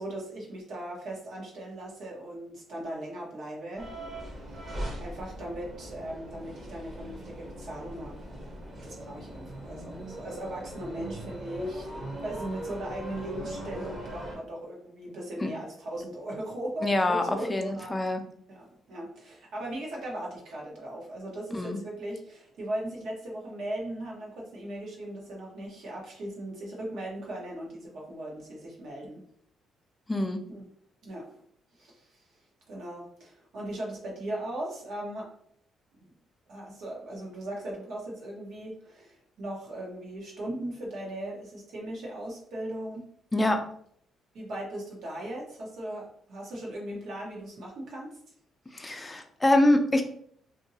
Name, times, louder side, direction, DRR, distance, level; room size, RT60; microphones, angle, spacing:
voice 1, 0.0-3.9 4.4-8.2 8.8-18.0 18.5-29.2 30.5-30.6 31.0-31.4 31.8-32.2 32.7-35.3 35.9-36.0 36.5-43.1 44.3-48.2 48.7-48.9, right 1 dB, 75° right, -2 dB, 1.1 m, -38 dB
sound 1, 3.8-14.4, equal, 35° right, 0.9 m, -40 dB
voice 2, 16.8-18.2 21.5-21.8 30.1-30.4 43.3-43.6 48.7-50.0, left 1 dB, 15° left, 5 dB, 0.5 m, -25 dB
2.7 x 2.7 x 2.7 m, 0.63 s
cardioid pair, 90°, 0 cm